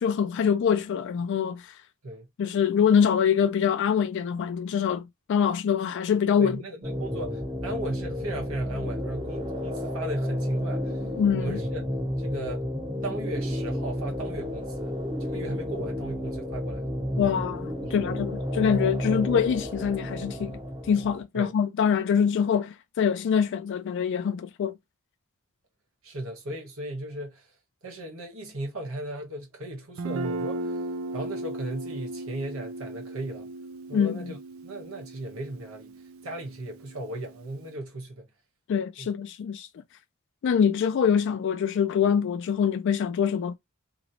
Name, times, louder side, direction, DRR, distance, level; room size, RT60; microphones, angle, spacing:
voice 1, 0.0-1.8 2.4-6.6 11.2-11.6 17.2-20.6 20.9-24.8 33.9-34.3 38.7-39.7 40.4-43.6, left 7 dB, 60° left, 0.3 m, -24 dB
voice 2, 6.4-11.0 11.4-11.9 12.2-12.7 13.0-17.0 17.8-18.2 19.1-19.3 21.3-21.5 26.0-27.5 27.8-30.8 31.1-33.5 33.9-35.9 36.2-38.3 39.0-39.1, right 1 dB, 90° right, 1.2 m, -36 dB
sound 1, 6.8-21.2, left 1 dB, 25° right, 0.8 m, -31 dB
Guitar, 30.0-37.7, right 2 dB, 75° right, 0.4 m, -37 dB
3.0 x 3.0 x 2.6 m
head